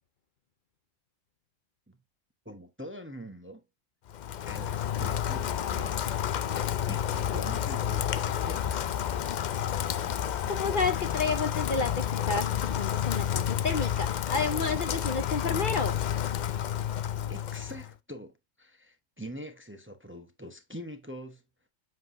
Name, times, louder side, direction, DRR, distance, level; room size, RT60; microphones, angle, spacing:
voice 1, 2.4-3.6 4.5-6.5 6.9-8.9 17.3-21.4, equal, 10° right, 0.8 m, -44 dB
Rain, 4.1-17.9, left 9 dB, 70° left, 0.4 m, -30 dB
voice 2, 10.5-16.0, left 4 dB, 50° left, 0.8 m, -31 dB
7.6 x 5.7 x 2.5 m
omnidirectional pair, 1.3 m